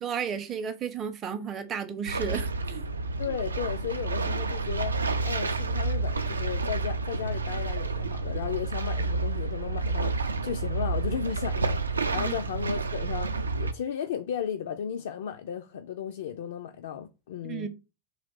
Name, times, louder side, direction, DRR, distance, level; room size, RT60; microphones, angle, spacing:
voice 1, 0.0-2.8 12.1-12.3 17.4-17.7, right 7 dB, 30° right, 0.5 m, -33 dB
sound 1, 2.0-13.7, right 3 dB, 75° right, 0.3 m, -30 dB
voice 2, 3.2-17.7, left 8 dB, 60° left, 0.3 m, -35 dB
3.7 x 2.4 x 3.5 m
figure-of-eight pair, 90°, 0 cm